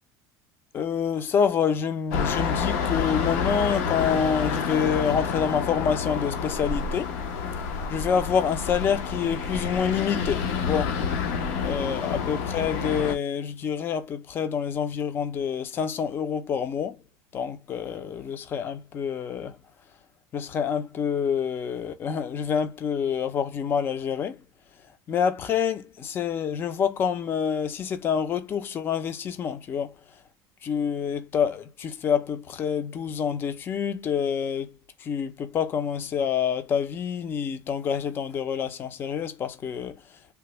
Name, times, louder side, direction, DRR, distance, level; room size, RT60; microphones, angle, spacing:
voice 1, 0.7-7.1 7.9-10.9 11.6-17.0 17.3-19.6 20.3-24.4 25.1-29.9 30.6-34.7 35.0-40.0, left 7 dB, 25° left, 0.4 m, -27 dB
sound 1, 2.1-13.2, left 6 dB, 70° left, 0.7 m, -28 dB
3.4 x 2.1 x 2.9 m
cardioid pair, 160°, 9 cm